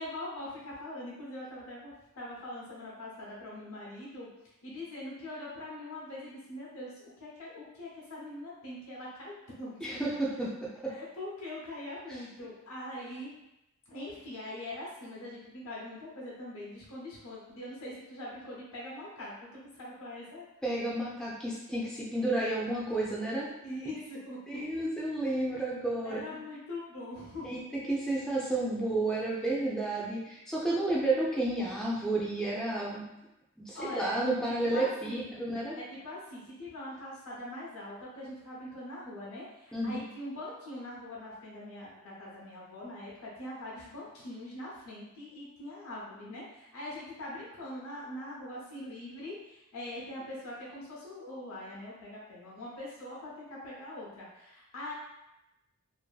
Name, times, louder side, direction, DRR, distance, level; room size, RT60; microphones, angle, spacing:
voice 1, 0.0-4.3 4.6-6.9 7.2-9.3 9.6-10.0 10.8-13.4 13.9-20.4 23.6-24.6 26.0-27.5 33.7-34.1 34.4-35.4 35.7-54.9, left 1 dB, 80° left, -6 dB, 0.8 m, -42 dB
voice 2, 9.8-10.9 20.6-23.5 24.5-26.4 27.4-33.1 33.6-35.8 39.7-40.0, right 2 dB, 5° left, -6 dB, 0.4 m, -31 dB
2.6 x 2.6 x 2.3 m, 0.90 s
head